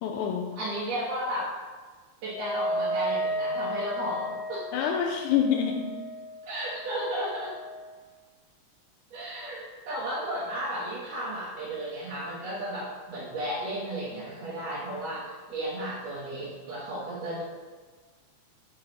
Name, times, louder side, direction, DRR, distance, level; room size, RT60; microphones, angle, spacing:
voice 1, 0.0-0.6 4.7-6.0, left 8 dB, 85° left, 2 dB, 2.0 m, -27 dB
voice 2, 0.6-1.5 2.2-4.7 6.5-7.5 9.1-17.4, right 1 dB, 65° right, -8 dB, 2.1 m, -34 dB
Wind instrument woodwind instrument, 2.3-7.9, equal, 50° left, 1.0 m, -34 dB
6.3 x 4.7 x 3.8 m, 1.4 s
omnidirectional pair, 3.4 m